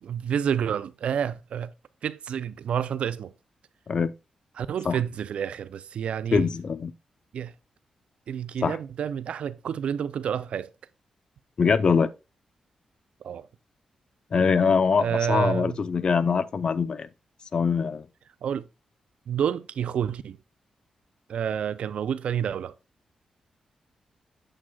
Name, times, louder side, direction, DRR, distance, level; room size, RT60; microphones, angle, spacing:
voice 1, 0.0-1.7 2.0-3.3 4.6-6.5 7.3-7.5 8.3-10.7 13.2-13.5 15.0-15.8 18.4-18.7 19.3-20.4 21.3-22.7, right 8 dB, 75° right, 0.4 m, -29 dB
voice 2, 6.3-6.9 8.6-8.8 11.6-12.1 14.3-17.1 17.5-18.1, left 5 dB, 45° left, 0.5 m, -23 dB
8.7 x 7.5 x 2.3 m
cardioid pair, 110°, 2 cm